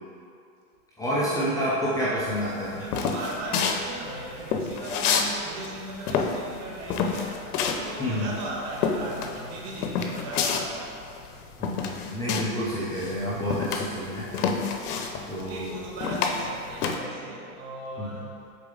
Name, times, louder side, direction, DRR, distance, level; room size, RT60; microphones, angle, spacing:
voice 1, 1.0-2.8 8.0-8.3 11.6-14.3 15.3-15.8 18.0-18.1, equal, 10° left, -9 dB, 0.6 m, -29 dB
sound 1, 2.3-5.3 5.6-12.7 12.9-17.0, left 6 dB, 90° left, 0.8 m, -28 dB
voice 2, 2.7-11.4 15.3-18.5, right 1 dB, 45° right, -2 dB, 1.3 m, -38 dB
6.8 x 4.2 x 3.8 m, 2.4 s
supercardioid pair, 145°, 44 cm